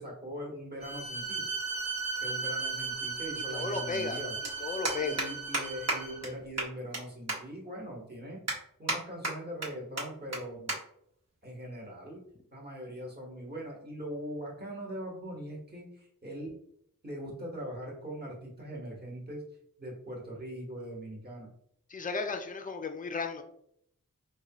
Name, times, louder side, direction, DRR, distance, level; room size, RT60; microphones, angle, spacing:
voice 1, 0.0-1.4 2.2-4.4 5.0-8.4 8.8-10.8 11.4-12.2 12.5-16.5 17.0-19.4 19.8-21.5, equal, 30° right, -3 dB, 1.3 m, -41 dB
Bowed string instrument, 0.8-6.3, right 4 dB, 80° right, 1.3 m, -36 dB
voice 2, 3.5-4.2 4.6-5.2 21.9-23.4, left 4 dB, 25° left, 6 dB, 0.4 m, -34 dB
sound 1, 4.4-4.5 4.9-5.3 5.5-5.6 5.9-6.0 6.2-6.3 6.6-7.0 7.3-7.4 7.9-8.0 8.5-9.0 9.2-9.7 10.0-10.1 10.3-10.4 10.7-10.8 11.1-11.3 12.1-12.4, right 2 dB, 50° right, 1.2 m, -31 dB
4.6 x 2.3 x 2.9 m, 0.70 s
wide cardioid pair, 60°, 34 cm